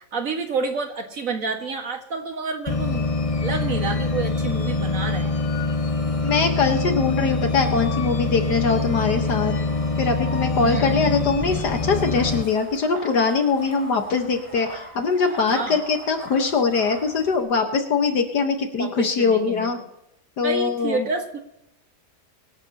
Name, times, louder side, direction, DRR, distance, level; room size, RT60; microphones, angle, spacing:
voice 1, 0.1-3.1 3.4-5.3 10.6-11.2 15.5-15.8 18.8-19.7 20.4-21.4, right 4 dB, 50° right, 4 dB, 2.0 m, -29 dB
sound 1, 2.7-12.4, left 3 dB, 40° left, 0.4 m, -24 dB
voice 2, 6.2-9.5 10.0-19.8 20.4-21.1, left 5 dB, 70° left, 5 dB, 1.9 m, -22 dB
sound 2, 11.4-17.4, right 1 dB, 15° right, 5.8 m, -42 dB
25.5 x 10.5 x 2.9 m, 0.83 s
omnidirectional pair, 1.9 m